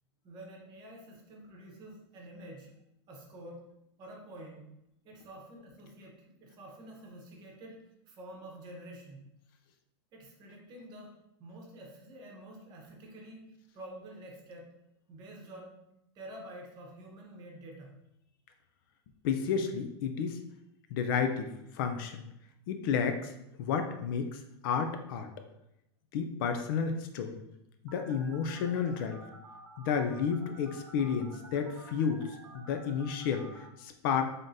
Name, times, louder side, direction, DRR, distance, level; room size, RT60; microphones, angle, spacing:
voice 1, 0.2-2.7 3.1-3.6 4.0-4.6 5.0-9.2 10.1-14.7 15.1-15.8 16.1-17.9, right 1 dB, 30° right, -1 dB, 0.9 m, -48 dB
voice 2, 19.2-20.4 20.9-22.2 22.7-23.3 23.6-25.3 26.1-27.4 27.8-29.2 29.8-34.2, left 6 dB, 50° left, 6 dB, 0.4 m, -31 dB
Telephone, 27.9-33.7, right 2 dB, 85° right, 0.8 m, -52 dB
3.7 x 3.5 x 2.7 m, 0.84 s
supercardioid pair, 145°, 14 cm